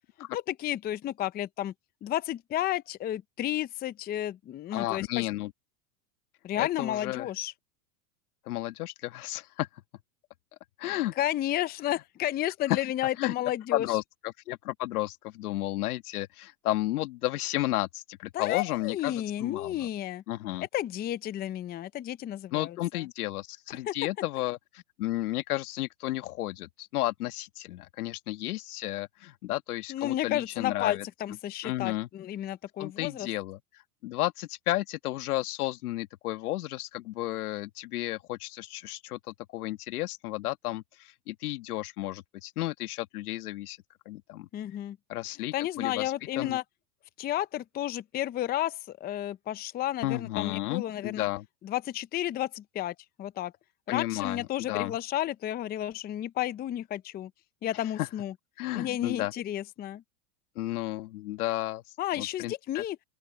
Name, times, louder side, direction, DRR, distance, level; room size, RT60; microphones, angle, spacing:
voice 1, 0.3-1.7 2.0-5.3 6.4-7.5 11.2-13.9 18.3-20.2 20.7-23.0 23.8-23.9 29.9-33.3 44.5-45.0 45.5-46.6 47.2-51.3 51.6-53.5 53.9-57.3 57.6-58.3 58.7-60.0 62.0-63.0, left 13 dB, 20° left, 0.6 m, -32 dB
voice 2, 4.7-5.5 6.6-7.3 8.5-9.7 10.8-11.1 12.7-12.8 13.2-13.3 13.7-14.0 14.5-19.8 20.3-20.7 22.5-31.0 31.6-32.1 32.8-33.6 34.0-43.8 44.0-44.5 45.1-46.6 50.0-51.4 53.9-55.0 58.0-58.1 58.6-59.3 60.5-61.8 62.2-62.8, left 16 dB, 80° left, 1.5 m, -32 dB
open air
supercardioid pair, 125°, 44 cm